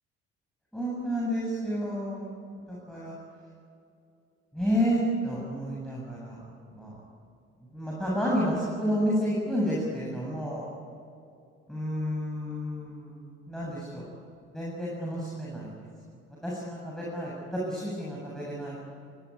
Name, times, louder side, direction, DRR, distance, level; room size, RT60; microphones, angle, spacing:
voice 1, 0.7-3.1 4.5-6.4 6.7-7.0 7.7-10.7 11.7-14.1 14.5-15.7 16.4-18.8, equal, ahead, -6 dB, 7.8 m, -30 dB
24.0 x 17.5 x 9.6 m, 2.6 s
hypercardioid pair, 55°, 34 cm